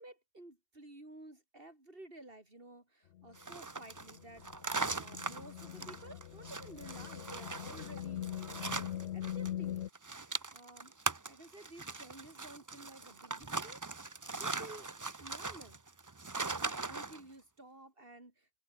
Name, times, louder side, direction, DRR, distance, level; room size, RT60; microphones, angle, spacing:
voice 1, 0.0-9.9 10.5-10.9 11.3-13.8 14.4-14.9 15.2-15.8 16.4-18.6, right 2 dB, 45° right, 5.1 m, -53 dB
sound 1, 3.2-9.9, left 11 dB, 65° left, 0.9 m, -42 dB
sound 2, 3.4-9.5 9.8-17.2, right 3 dB, 20° right, 0.5 m, -40 dB
open air
omnidirectional pair, 1.4 m